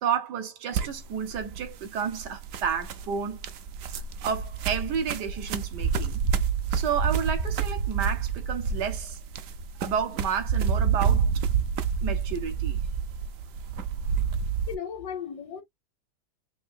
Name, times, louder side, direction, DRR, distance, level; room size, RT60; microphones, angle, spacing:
voice 1, 0.0-3.4 4.2-6.2 6.7-9.2 9.8-11.3 12.0-12.8, right 7 dB, 85° right, 1.6 m, -31 dB
sound 1, 0.7-14.7, right 6 dB, 65° right, 0.9 m, -28 dB
voice 2, 13.0-13.3 14.7-15.6, left 8 dB, 80° left, 1.5 m, -37 dB
6.0 x 2.6 x 2.5 m
omnidirectional pair, 1.8 m